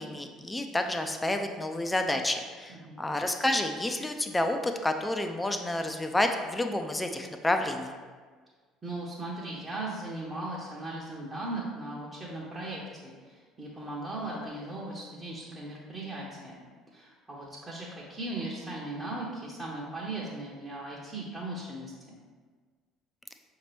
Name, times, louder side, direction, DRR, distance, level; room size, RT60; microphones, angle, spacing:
voice 1, 0.0-7.9, left 1 dB, 10° left, 5 dB, 0.4 m, -29 dB
voice 2, 8.8-16.6 16.9-22.2, right 2 dB, 25° right, -7 dB, 0.8 m, -38 dB
5.7 x 2.8 x 3.2 m, 1.5 s
figure-of-eight pair, 60°, 0 cm